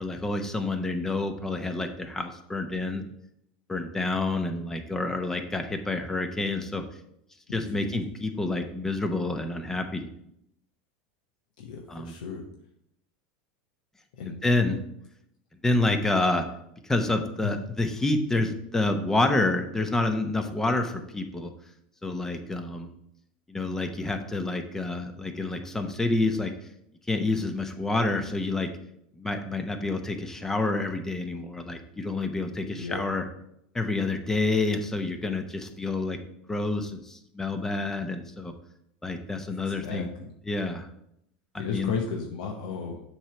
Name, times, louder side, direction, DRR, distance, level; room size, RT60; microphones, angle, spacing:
voice 1, 0.0-3.1 3.7-6.8 7.5-10.1 11.9-12.1 14.3-14.8 15.6-16.5 16.8-21.5 22.0-22.9 23.5-26.5 27.1-28.7 29.2-33.3 33.7-36.2 36.5-38.5 39.0-40.1 40.5-40.9 41.5-41.9, left 2 dB, 10° left, 6 dB, 0.8 m, -28 dB
voice 2, 7.5-7.9 11.6-12.4 14.2-14.4 17.4-17.6 32.8-33.1 39.6-40.3 41.6-43.0, left 5 dB, 80° left, 0 dB, 0.9 m, -34 dB
7.2 x 3.2 x 5.9 m, 0.75 s
supercardioid pair, 115°, 4 cm